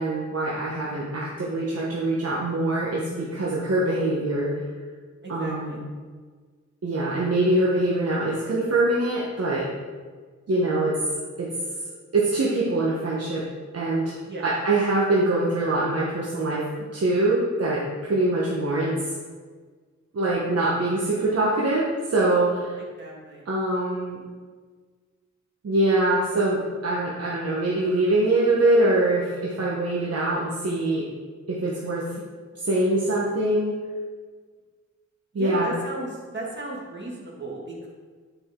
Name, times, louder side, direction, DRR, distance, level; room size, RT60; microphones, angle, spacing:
voice 1, 0.0-4.5 5.3-5.8 6.8-9.7 10.5-11.0 11.4-11.5 12.1-13.4 13.7-14.1 14.4-19.0 20.1-22.8 23.5-24.2 25.6-31.1 31.5-32.1 32.6-33.8 35.3-35.7, right 2 dB, 55° right, -5 dB, 1.1 m, -23 dB
voice 2, 5.2-5.8 14.3-14.5 23.0-23.5 35.3-37.9, right 2 dB, 35° right, -4 dB, 1.9 m, -35 dB
8.9 x 5.1 x 3.7 m, 1.5 s
wide cardioid pair, 130°, 30 cm